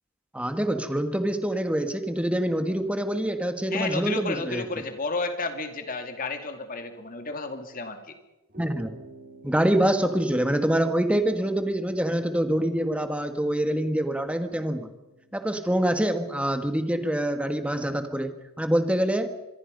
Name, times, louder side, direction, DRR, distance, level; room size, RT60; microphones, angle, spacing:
voice 1, 0.3-4.6 8.6-8.9 9.4-14.9 15.3-19.3, right 1 dB, 5° right, 7 dB, 1.6 m, -25 dB
voice 2, 3.7-8.1, left 3 dB, 40° left, 6 dB, 2.6 m, -32 dB
sound 1, 8.5-16.2, right 2 dB, 45° right, 4.3 m, -52 dB
26.0 x 23.0 x 5.4 m, 0.98 s
head